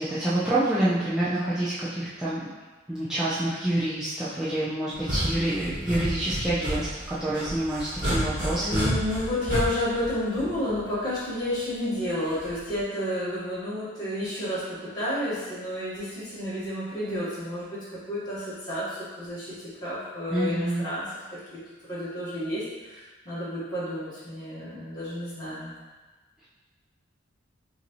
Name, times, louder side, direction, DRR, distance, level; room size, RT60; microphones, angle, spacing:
voice 1, 0.0-2.4 2.9-8.9 20.3-20.8, right 1 dB, 5° right, -11 dB, 0.5 m, -27 dB
sound 1, 4.9-11.0 12.4-12.8, equal, 45° right, 1.2 m, -30 dB
voice 2, 8.5-21.6 21.9-25.7, left 1 dB, 20° left, -11 dB, 1.5 m, -31 dB
5.6 x 2.7 x 3.0 m, 1.3 s
head